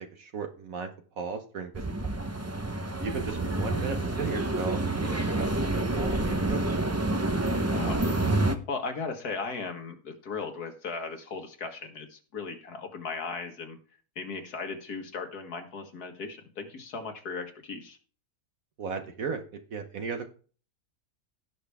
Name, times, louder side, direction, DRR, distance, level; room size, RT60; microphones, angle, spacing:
voice 1, 0.1-0.9 1.2-2.2 3.0-6.6 18.8-19.4 19.7-20.3, right 5 dB, 65° right, 6 dB, 1.4 m, -36 dB
sound 1, 1.7-8.6, right 2 dB, 20° right, 0.4 m, -28 dB
voice 2, 7.7-8.1 8.7-13.8 14.2-18.0, left 4 dB, 75° left, 5 dB, 2.1 m, -37 dB
16.5 x 6.0 x 3.5 m, 0.39 s
omnidirectional pair, 1.6 m